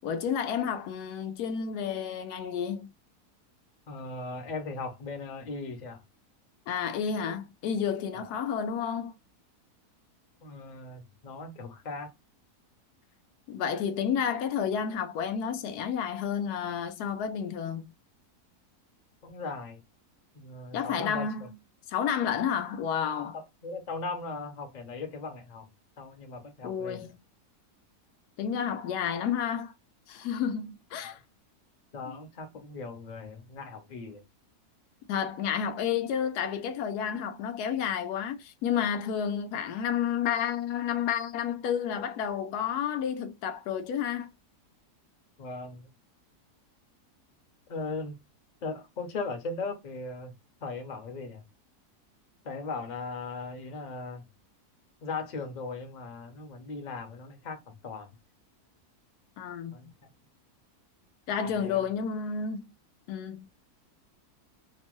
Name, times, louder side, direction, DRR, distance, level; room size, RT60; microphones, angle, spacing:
voice 1, 0.0-2.9 6.7-9.1 13.5-17.9 20.7-21.5 21.9-23.4 26.6-27.2 28.4-29.7 30.1-31.2 32.1-32.2 35.1-44.3 59.4-59.9 61.3-62.6 63.1-63.5, left 8 dB, 80° left, 1.1 m, -31 dB
voice 2, 3.9-6.0 8.1-8.2 10.4-12.1 19.2-19.8 20.3-21.3 23.3-25.7 26.0-27.1 31.0-31.2 31.9-34.2 45.4-45.8 47.7-48.2 48.6-50.3 50.6-51.5 52.4-54.3 55.0-58.1 59.7-59.9 61.5-61.8, left 3 dB, 40° left, 0.6 m, -38 dB
2.9 x 2.1 x 2.9 m
omnidirectional pair, 1.7 m